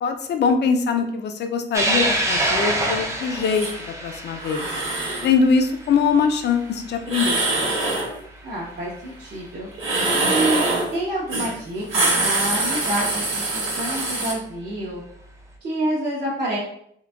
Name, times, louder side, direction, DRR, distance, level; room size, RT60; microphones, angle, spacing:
voice 1, 0.0-3.7 4.0-4.7 5.2-7.4, left 5 dB, 60° left, 7 dB, 0.4 m, -22 dB
sound 1, 1.7-8.4 8.9-9.0 10.2-10.3 12.5-12.6 14.0-14.2, right 1 dB, 15° right, 0.4 m, -26 dB
sound 2, 3.4-3.7 4.4-5.3 7.1-8.1 9.7-10.9 11.3-11.5 11.8-14.3, right 2 dB, 90° right, 1.1 m, -23 dB
voice 2, 8.4-9.7 10.2-10.6 10.9-15.0 15.6-16.6, right 1 dB, 50° right, -7 dB, 0.7 m, -28 dB
3.7 x 2.5 x 2.3 m, 0.70 s
wide cardioid pair, 170°, 20 cm